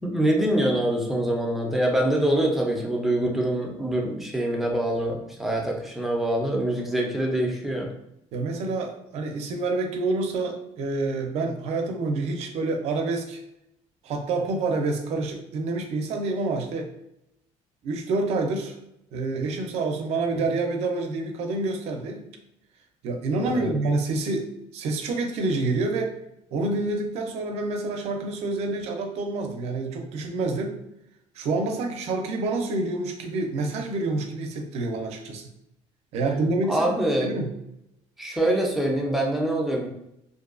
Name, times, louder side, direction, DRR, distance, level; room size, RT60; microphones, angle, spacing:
voice 1, 0.0-7.9 23.5-23.7 36.7-37.3 38.2-39.9, right 1 dB, ahead, -1 dB, 0.4 m, -24 dB
voice 2, 8.3-13.4 14.0-16.9 17.8-18.7 19.1-22.3 23.0-26.1 26.5-30.8 31.4-35.5 36.1-36.9 37.2-37.5, right 3 dB, 60° right, 4 dB, 0.5 m, -27 dB
2.6 x 2.2 x 2.4 m, 0.81 s
cardioid pair, 150°, 12 cm